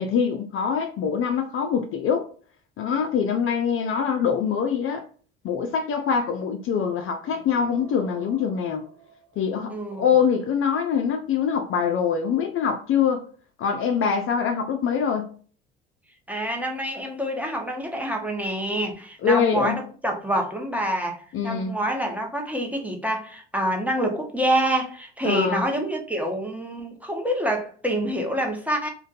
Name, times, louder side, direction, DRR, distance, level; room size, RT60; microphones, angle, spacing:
voice 1, 0.0-2.3 2.8-5.0 5.4-8.8 9.4-13.2 13.6-15.3 19.2-19.8 21.3-21.7 25.2-25.6, left 7 dB, 45° left, 0.4 m, -24 dB
sound 1, 7.2-9.8, right 6 dB, 85° right, 1.2 m, -48 dB
voice 2, 9.7-10.0 16.3-28.9, right 1 dB, 5° right, 0.7 m, -27 dB
2.5 x 2.2 x 2.3 m
hypercardioid pair, 75°, 32 cm